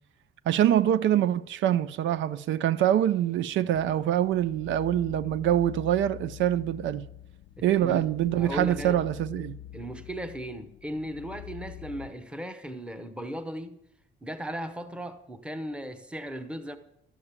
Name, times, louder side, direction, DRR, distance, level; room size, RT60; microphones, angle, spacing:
voice 1, 0.5-7.1 7.6-9.6, right 11 dB, 85° right, 0.5 m, -25 dB
sound 1, 3.7-12.1, left 12 dB, 70° left, 0.5 m, -45 dB
voice 2, 7.6-8.1 8.4-9.0 9.7-13.8 14.2-16.8, equal, 5° right, 0.8 m, -37 dB
12.0 x 7.3 x 8.1 m
cardioid pair, 170°, 19 cm